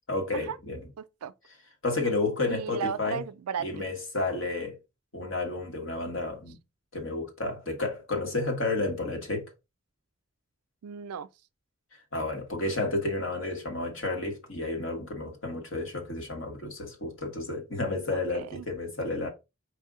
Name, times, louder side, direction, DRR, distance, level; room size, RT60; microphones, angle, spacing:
voice 1, 0.1-0.8 1.8-3.2 3.6-4.8 5.1-6.6 6.9-9.5 12.1-19.3, left 2 dB, 60° left, 1.6 m, -31 dB
voice 2, 1.0-1.3 2.5-3.9 10.8-11.3 18.1-18.7, right 7 dB, 90° right, 0.4 m, -35 dB
5.0 x 2.7 x 3.7 m
head